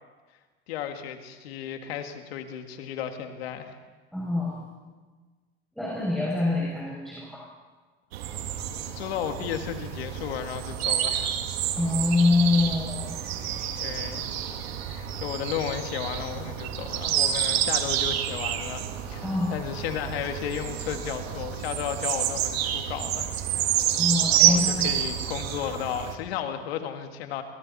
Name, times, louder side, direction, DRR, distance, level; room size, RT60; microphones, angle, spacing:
voice 1, 0.7-3.8 8.8-11.4 13.8-14.2 14.9-23.8 24.3-27.4, left 9 dB, 85° left, 6 dB, 2.0 m, -34 dB
voice 2, 4.1-4.6 5.8-7.5 11.7-13.2 19.2-19.5 24.0-24.9, left 3 dB, ahead, -4 dB, 6.9 m, -25 dB
sound 1, 8.1-26.1, right 11 dB, 85° right, 2.1 m, -28 dB
26.0 x 23.5 x 4.3 m, 1.3 s
supercardioid pair, 95°, 30 cm